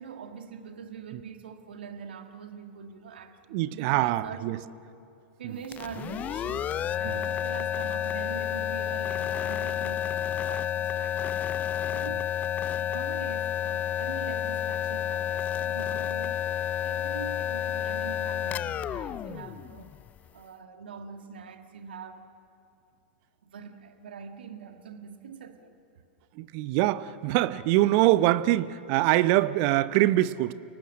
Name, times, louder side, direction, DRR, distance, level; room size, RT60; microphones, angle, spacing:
voice 1, 0.0-4.7 5.4-6.7 7.0-11.4 11.8-12.3 12.8-16.5 16.8-19.9 20.3-22.3 23.4-25.8, right 6 dB, 65° right, 1.8 m, -43 dB
voice 2, 3.5-4.6 5.4-5.5 7.0-7.2 26.3-30.5, right 16 dB, 45° right, 0.8 m, -24 dB
sound 1, 5.6-20.3, left 10 dB, 25° left, 0.5 m, -30 dB
30.0 x 19.0 x 7.6 m
figure-of-eight pair, 95°, 6 cm